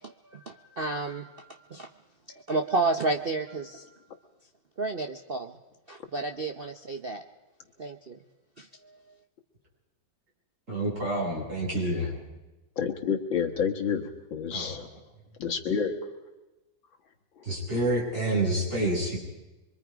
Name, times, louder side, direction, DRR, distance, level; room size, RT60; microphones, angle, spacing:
voice 1, 0.0-1.9 2.3-3.9 4.8-5.6 5.9-7.2 7.8-8.2 8.6-8.7, right 3 dB, 60° right, 4 dB, 0.5 m, -31 dB
voice 2, 10.7-12.2 14.5-14.8 17.4-19.2, right 1 dB, 35° right, -5 dB, 7.5 m, -28 dB
voice 3, 12.8-14.8 15.4-15.9, left 7 dB, 70° left, 3 dB, 2.2 m, -29 dB
25.0 x 23.5 x 5.1 m, 1.1 s
omnidirectional pair, 2.2 m